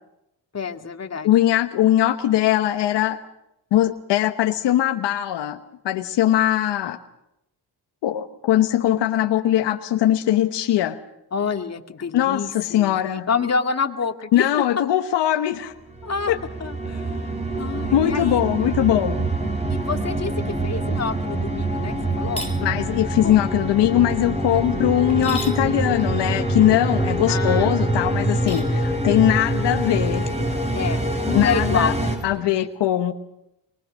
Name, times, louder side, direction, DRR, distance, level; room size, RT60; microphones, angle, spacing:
voice 1, 0.5-1.3 8.8-8.9 11.3-14.6 16.0-16.3 16.6-17.3 17.6-18.4 19.7-20.3 20.6-22.5 23.2-23.4 24.5-24.6 25.6-25.7 26.0-26.1 27.3-27.7 30.7-32.1 32.5-32.7, left 5 dB, 40° left, 5 dB, 2.3 m, -28 dB
voice 2, 1.2-3.2 3.7-5.6 5.8-7.0 8.0-11.0 12.1-13.3 14.3-15.7 16.3-16.4 17.9-19.3 22.6-30.3 31.3-31.9 32.2-33.1, left 12 dB, 85° left, 8 dB, 1.2 m, -20 dB
sound 1, 15.9-32.2, right 1 dB, 15° right, 7.9 m, -25 dB
sound 2, 22.2-22.6 25.1-25.6 28.3-28.7, equal, 15° left, 6.5 m, -34 dB
sound 3, 26.0-32.4, right 3 dB, 70° right, 6.5 m, -41 dB
24.0 x 22.5 x 6.4 m, 0.83 s
cardioid pair, 70°, 41 cm